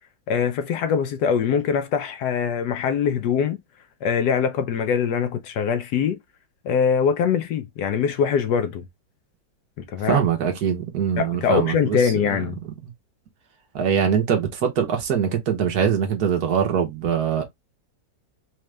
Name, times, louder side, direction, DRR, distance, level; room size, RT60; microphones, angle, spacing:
voice 1, 0.3-3.6 4.0-6.2 6.6-8.9 9.8-10.2 11.2-12.6, left 7 dB, 70° left, 1.1 m, -23 dB
voice 2, 10.0-12.4 13.7-17.4, right 8 dB, 60° right, 1.4 m, -23 dB
4.2 x 2.4 x 3.2 m
omnidirectional pair, 2.0 m